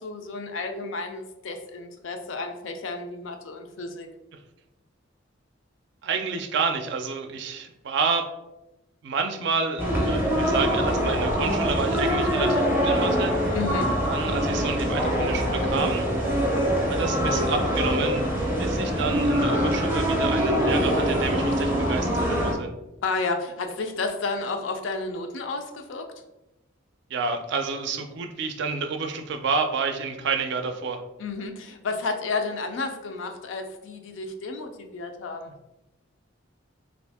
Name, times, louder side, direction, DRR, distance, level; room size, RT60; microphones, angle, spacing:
voice 1, 0.0-4.1 13.5-13.9 23.0-26.1 31.2-35.5, left 3 dB, 70° left, 5 dB, 0.4 m, -31 dB
voice 2, 6.0-8.3 9.0-13.3 14.1-16.0 16.9-18.3 18.6-22.7 27.1-31.0, right 5 dB, 60° right, 6 dB, 0.4 m, -29 dB
sound 1, 9.8-22.5, equal, 10° right, 0.5 m, -24 dB
2.7 x 2.5 x 3.4 m, 0.95 s
head